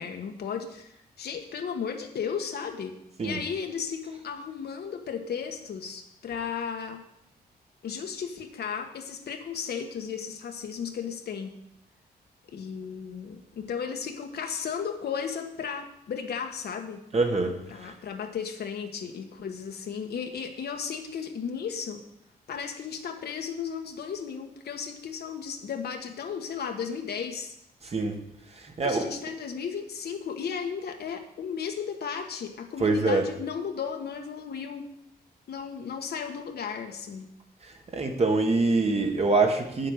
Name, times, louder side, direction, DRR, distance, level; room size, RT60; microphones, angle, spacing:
voice 1, 0.0-2.9 3.2-7.0 7.8-11.5 12.5-17.0 17.7-22.0 22.5-27.5 28.8-34.9 35.5-37.3, left 7 dB, 70° left, 4 dB, 1.4 m, -35 dB
voice 2, 17.1-17.9 27.8-28.2 28.6-29.1 32.8-33.2 37.6-39.9, right 3 dB, 35° right, 3 dB, 1.7 m, -25 dB
8.4 x 7.5 x 6.6 m, 0.78 s
cardioid pair, 95°, 17 cm